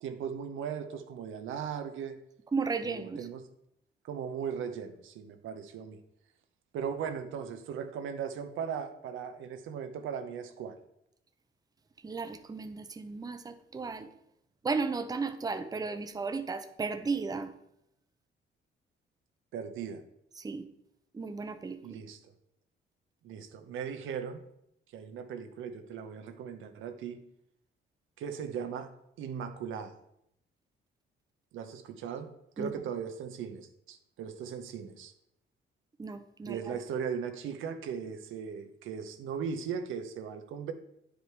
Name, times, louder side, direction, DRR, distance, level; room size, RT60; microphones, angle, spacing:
voice 1, 0.0-2.2 2.8-3.4 4.0-6.0 6.7-10.8 19.5-20.0 21.8-22.2 23.2-24.4 24.9-27.2 28.2-28.9 29.2-29.9 31.5-32.3 32.6-35.1 36.4-40.7, right 7 dB, 80° right, 7 dB, 0.9 m, -38 dB
voice 2, 2.5-3.3 12.0-14.1 14.6-17.5 20.4-20.7 21.1-21.8 32.6-32.8 36.0-36.8, right 4 dB, 20° right, 9 dB, 0.6 m, -34 dB
9.1 x 5.1 x 4.7 m, 0.77 s
cardioid pair, 90°, 20 cm